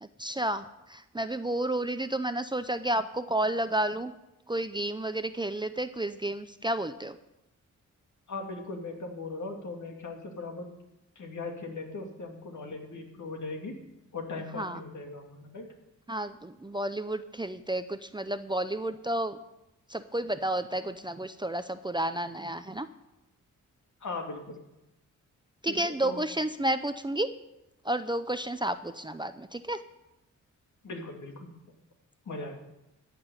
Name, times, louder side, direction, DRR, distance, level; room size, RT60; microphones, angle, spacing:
voice 1, 0.0-4.1 4.5-7.2 14.5-14.8 16.1-19.4 19.9-22.9 25.6-27.3 27.8-29.8, right 1 dB, 15° right, 10 dB, 0.6 m, -31 dB
voice 2, 8.3-10.7 11.2-13.7 14.1-15.7 24.0-24.6 25.7-26.2 30.8-31.5 32.3-32.5, left 3 dB, 65° left, 2 dB, 2.6 m, -39 dB
14.5 x 6.1 x 9.4 m, 0.93 s
cardioid pair, 85°, 32 cm